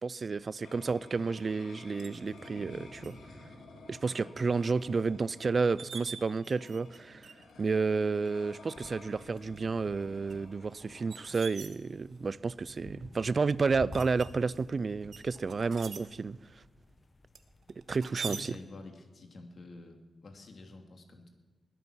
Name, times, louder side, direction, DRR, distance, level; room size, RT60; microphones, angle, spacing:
voice 1, 0.0-3.2 3.9-7.3 7.6-16.6 17.9-18.6, right 4 dB, 45° right, 0.4 m, -31 dB
sound 1, 0.6-11.3, left 2 dB, 90° left, 2.4 m, -52 dB
sound 2, 2.0-2.2 3.0-3.1 3.6-4.0 4.4-4.5 5.3-5.4 5.6-7.0 7.2-7.6 8.3-8.4 9.2-9.6 10.3-12.3 12.9-13.3 13.9-14.6 15.1-16.0 17.3-18.4, right 6 dB, 65° right, 1.2 m, -45 dB
sound 3, 8.7-18.7, left 2 dB, 35° left, 1.0 m, -53 dB
voice 2, 17.9-21.3, left 2 dB, 55° left, 2.5 m, -49 dB
20.5 x 9.2 x 6.2 m
cardioid pair, 85°, 0 cm